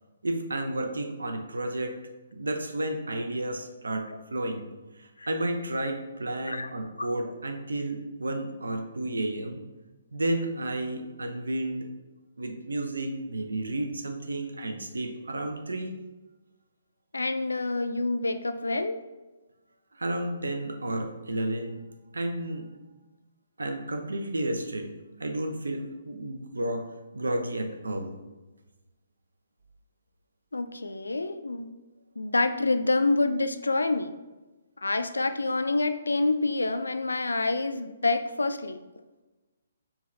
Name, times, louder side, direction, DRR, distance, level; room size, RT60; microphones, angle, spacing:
voice 1, 0.2-1.9 2.3-4.7 5.0-9.6 10.1-11.9 12.4-16.0 20.0-21.8 22.1-22.7 23.6-24.9 25.2-26.8 27.1-28.1, right 1 dB, 70° right, 4 dB, 0.6 m, -32 dB
voice 2, 17.1-19.0 30.5-31.7 32.2-34.1 34.8-38.8, left 2 dB, 70° left, 9 dB, 0.3 m, -27 dB
4.6 x 2.7 x 3.2 m, 1.1 s
figure-of-eight pair, 130°, 0 cm